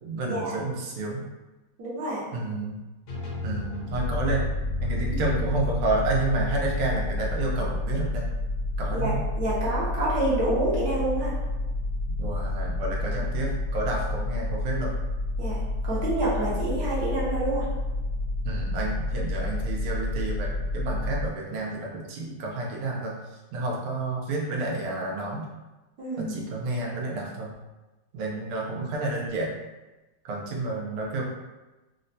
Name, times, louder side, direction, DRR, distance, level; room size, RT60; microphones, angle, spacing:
voice 1, 0.0-1.2 2.3-2.8 3.4-4.5 4.8-8.2 8.8-9.2 12.1-14.9 18.4-25.5 26.2-27.5 28.1-29.6 30.2-31.2, right 2 dB, 90° right, -2 dB, 1.6 m, -30 dB
voice 2, 1.8-2.2 5.1-5.2 8.9-11.3 15.4-15.6 15.8-17.6 26.0-26.4, right 1 dB, 65° right, -7 dB, 1.1 m, -28 dB
sound 1, 3.1-8.8, left 4 dB, 85° left, 1.7 m, -36 dB
sound 2, 3.9-21.3, left 2 dB, 55° left, 1.1 m, -29 dB
4.2 x 2.1 x 2.6 m, 1.1 s
omnidirectional pair, 2.4 m